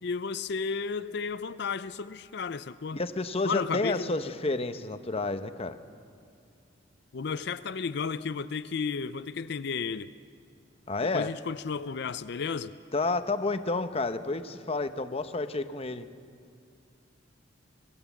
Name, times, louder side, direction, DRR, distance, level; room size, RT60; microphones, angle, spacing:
voice 1, 0.0-3.0 3.4-4.1 7.1-10.1 11.1-12.7, left 5 dB, 60° left, 13 dB, 0.5 m, -33 dB
voice 2, 2.9-5.8 10.9-11.3 12.9-16.1, left 3 dB, 30° left, 10 dB, 0.8 m, -30 dB
25.5 x 17.0 x 7.2 m, 2.3 s
head